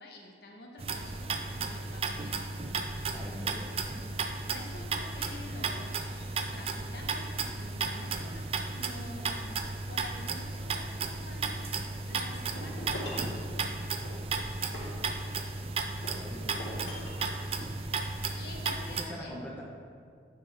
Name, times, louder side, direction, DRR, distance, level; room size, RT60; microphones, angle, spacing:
voice 1, 0.0-2.4 4.5-8.5 8.7-11.7 12.0-13.9 16.5-16.9 18.4-19.5, left 1 dB, 60° left, 1 dB, 0.9 m, -48 dB
sound 1, 0.8-19.0, right 4 dB, 30° right, 0.3 m, -34 dB
voice 2, 3.1-4.0 16.2-17.0 18.9-19.6, equal, 10° left, -3 dB, 0.7 m, -44 dB
sound 2, 12.3-13.4 14.0-15.6 16.0-17.4, left 1 dB, 75° left, 1.5 m, -42 dB
8.2 x 5.5 x 3.4 m, 2.2 s
head